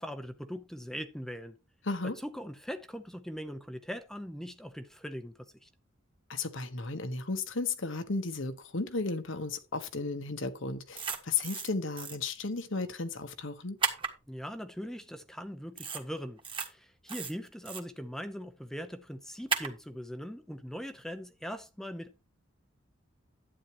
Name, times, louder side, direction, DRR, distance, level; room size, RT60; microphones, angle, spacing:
voice 1, 0.0-1.6 2.2-5.7 14.3-22.2, equal, ahead, 0.7 m, -41 dB
voice 2, 1.8-2.2 6.3-13.8, left 3 dB, 70° left, 1.3 m, -34 dB
sound 1, 10.9-11.7 12.0-12.2 13.8-14.1 15.8-16.0 16.4-16.7 17.1-17.8 19.5-19.7, right 4 dB, 25° right, 1.7 m, -33 dB
11.5 x 9.1 x 3.0 m
head